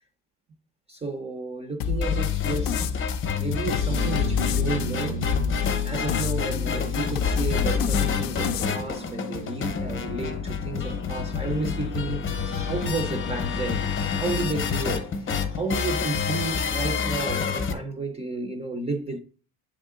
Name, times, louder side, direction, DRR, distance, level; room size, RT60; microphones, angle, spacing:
voice 1, 0.9-3.0 3.4-5.2 5.8-13.9 14.2-19.2, right 3 dB, 15° right, 0.5 m, -32 dB
sound 1, 1.8-8.7, left 8 dB, 60° left, 0.5 m, -28 dB
sound 2, 2.0-17.7, left 5 dB, 30° left, 0.8 m, -28 dB
sound 3, 3.9-13.6, right 12 dB, 85° right, 0.6 m, -42 dB
8.2 x 3.6 x 3.6 m
cardioid pair, 165°, 40 cm